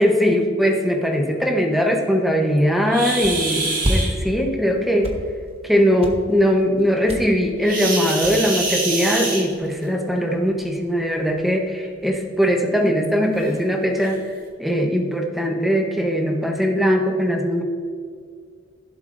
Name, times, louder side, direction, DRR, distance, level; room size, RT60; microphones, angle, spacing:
voice 1, 0.0-5.1 5.6-14.2 14.6-17.6, equal, ahead, 2 dB, 0.9 m, -20 dB
sound 1, 2.9-4.1 7.6-9.9 11.1-11.3 11.9-12.0 12.5-12.6 13.4-13.5 14.0-14.2, right 3 dB, 45° right, 1.5 m, -26 dB
sound 2, 3.2-3.3 3.8-4.0 4.3-4.6 4.9-5.7 6.0-6.3 6.8-7.2 7.5-7.6 7.8-7.9 8.2-8.8, right 1 dB, 30° right, 1.0 m, -26 dB
16.0 x 7.6 x 2.6 m, 2.1 s
head